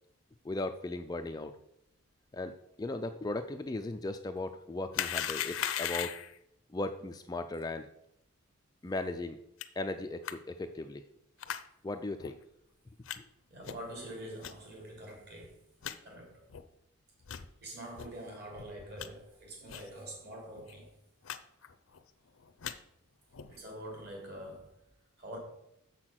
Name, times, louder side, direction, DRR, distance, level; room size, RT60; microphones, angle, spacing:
voice 1, 0.4-1.5 2.3-6.1 6.7-7.9 8.8-9.4 9.8-11.0 11.8-12.4, left 2 dB, 15° left, 0.3 m, -37 dB
sound 1, 4.9-6.4 9.6-9.7 10.2-10.3 11.4-11.6 12.2-12.3 13.1-13.2 13.6-13.9 14.4-14.5 15.1-15.2 15.4-15.5 15.8-16.0 16.5-16.6 17.2-17.5 18.0-18.1 18.5-19.1 19.7-19.9 20.2-20.3 20.5-20.7 21.2-21.4 21.6-22.0 22.4-22.7 23.3-23.6, left 9 dB, 65° left, 0.6 m, -37 dB
voice 2, 13.5-15.6 16.0-16.4 17.6-20.9 23.5-24.7 25.2-25.4, right 1 dB, 45° right, 3.3 m, -45 dB
7.3 x 5.9 x 6.1 m
head